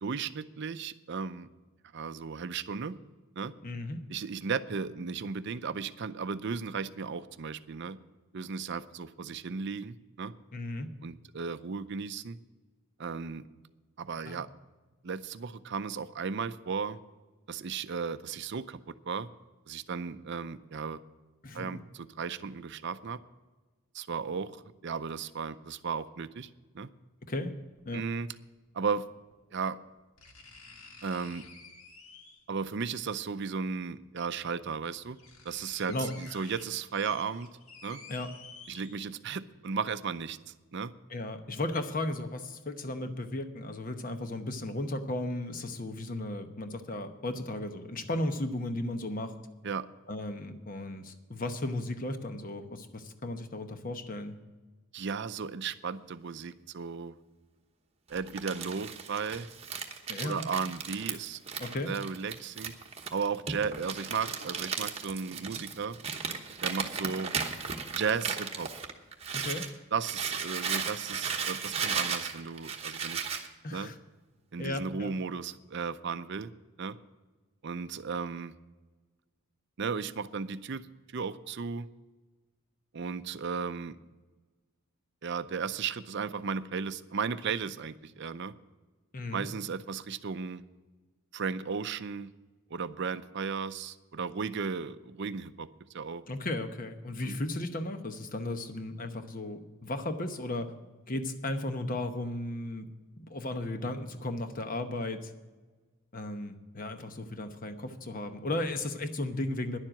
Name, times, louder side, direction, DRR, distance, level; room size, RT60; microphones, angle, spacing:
voice 1, 0.0-1.5 1.9-3.0 3.4-3.5 4.1-8.0 8.3-10.3 11.0-12.4 13.0-13.4 14.0-14.5 15.0-17.0 17.5-19.3 19.7-21.0 21.5-23.2 23.9-26.5 26.7-26.9 27.9-28.3 28.7-29.0 29.5-29.8 31.0-31.4 32.5-35.2 35.4-37.5 37.8-38.0 38.7-40.9 49.6-49.9 54.9-57.2 58.1-59.5 60.2-61.4 61.9-62.7 63.1-66.0 66.6-67.3 67.9-68.7 69.9-73.3 73.7-73.9 74.5-76.5 76.8-77.0 77.6-78.5 79.8-80.8 81.1-81.9 82.9-84.0 85.2-88.5 89.3-90.6 91.3-92.3 92.7-95.7 95.9-96.2 97.2-97.4, right 5 dB, 55° right, 13 dB, 0.5 m, -35 dB
voice 2, 3.6-4.0 10.5-10.9 14.3-14.4 21.4-21.8 27.3-27.6 27.9-28.0 35.9-36.1 38.1-38.3 41.1-49.3 50.1-54.4 60.1-60.4 61.6-61.9 69.3-69.7 73.6-73.9 74.6-75.1 89.1-89.5 96.3-100.7 101.1-102.9 103.2-105.3 106.1-109.8, left 1 dB, 40° left, 8 dB, 1.0 m, -35 dB
sound 1, 27.8-27.9 29.3-29.4 30.2-32.6 33.9-34.0 34.6-34.7 35.0-39.4 39.8-39.9, left 4 dB, 85° left, 1.7 m, -51 dB
Crumpling crinkling, 58.1-69.7 70.0-73.5, right 6 dB, 30° right, 1.1 m, -36 dB
10.5 x 7.4 x 8.8 m, 1.3 s
head